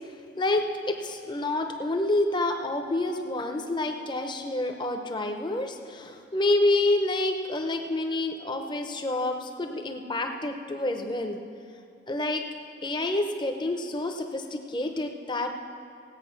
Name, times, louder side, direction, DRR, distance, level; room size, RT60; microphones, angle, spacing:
voice 1, 0.4-11.4 12.1-12.4 12.8-15.5, left 2 dB, 25° left, 5 dB, 0.8 m, -28 dB
17.5 x 8.4 x 5.8 m, 2.4 s
head